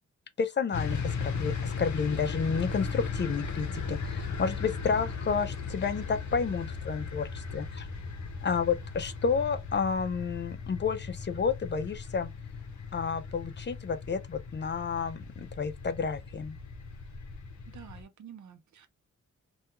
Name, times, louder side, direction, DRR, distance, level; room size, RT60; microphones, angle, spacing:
voice 1, 0.4-7.9 8.4-12.3 12.9-16.6, left 5 dB, 40° left, 0.4 m, -31 dB
sound 1, 0.7-18.0, left 5 dB, 80° left, 0.6 m, -37 dB
voice 2, 17.7-18.9, right 8 dB, 75° right, 0.5 m, -49 dB
2.3 x 2.2 x 2.9 m
cardioid pair, 70°, 29 cm